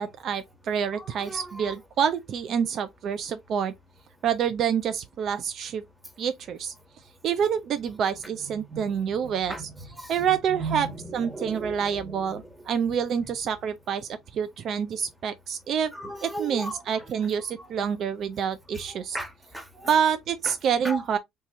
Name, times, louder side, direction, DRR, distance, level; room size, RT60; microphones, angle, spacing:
voice 1, 0.0-3.7 4.2-5.8 6.2-6.7 7.2-9.5 10.1-10.9 11.1-15.9 16.2-19.2 19.9-21.2, right 8 dB, 55° right, 0.3 m, -27 dB
voice 2, 0.9-1.8 8.4-9.0 9.2-12.5 12.9-13.3 15.9-17.7 18.7-19.9 20.4-20.5 20.8-21.2, right 2 dB, 5° right, 1.3 m, -38 dB
3.4 x 2.8 x 2.9 m
hypercardioid pair, 70°, 0 cm